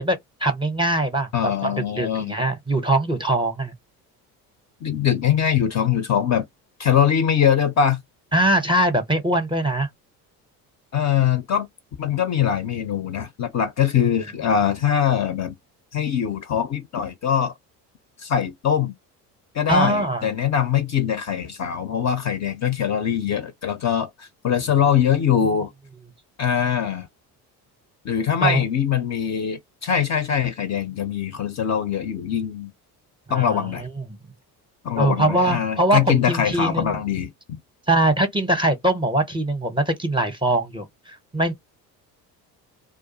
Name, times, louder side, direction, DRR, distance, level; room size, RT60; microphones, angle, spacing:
voice 1, 0.0-3.7 8.3-9.9 19.7-20.3 28.4-28.6 33.3-33.9 35.0-37.0 37.9-41.5, right 1 dB, 10° right, 0.6 m, -22 dB
voice 2, 1.3-2.3 4.8-6.5 6.8-8.0 10.9-11.7 12.0-15.5 15.9-17.5 18.2-18.9 19.5-25.7 26.4-27.1 28.0-32.7 33.3-33.9 34.8-37.6, left 8 dB, 35° left, 0.5 m, -22 dB
2.4 x 2.2 x 2.7 m
hypercardioid pair, 65°, 47 cm